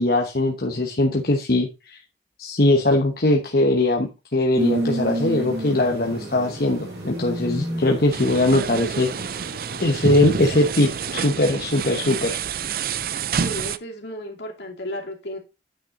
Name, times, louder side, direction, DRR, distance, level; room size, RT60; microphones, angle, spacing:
voice 1, 0.0-2.0 2.4-9.3 9.8-12.4, left 1 dB, 55° left, 1 dB, 1.1 m, -21 dB
sound 1, 4.5-11.2, equal, 70° right, 5.2 m, -31 dB
sound 2, 8.1-13.8, right 6 dB, 55° right, 0.4 m, -28 dB
voice 2, 13.4-15.4, equal, 75° left, 0 dB, 2.7 m, -33 dB
9.1 x 6.0 x 3.8 m, 0.27 s
head